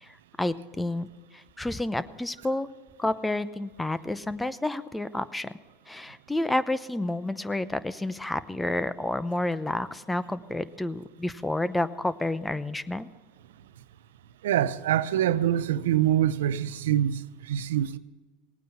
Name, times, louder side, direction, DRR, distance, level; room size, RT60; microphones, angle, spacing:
voice 1, 0.0-1.1 1.3-2.7 3.0-5.5 5.9-13.1, left 1 dB, 10° left, 0.7 m, -30 dB
voice 2, 14.4-18.0, right 11 dB, 80° right, 0.6 m, -25 dB
18.5 x 9.2 x 5.8 m
hypercardioid pair, 95°, 0 cm